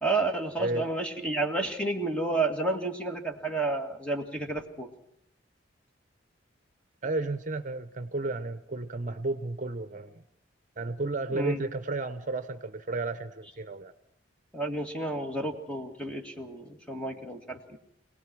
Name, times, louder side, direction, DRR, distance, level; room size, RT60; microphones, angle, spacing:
voice 1, 0.0-4.9 11.3-11.6 14.5-17.8, right 2 dB, 5° left, 4 dB, 2.2 m, -31 dB
voice 2, 7.0-10.2 10.8-13.9, right 2 dB, 40° right, 10 dB, 0.9 m, -33 dB
26.0 x 18.5 x 6.3 m, 0.76 s
head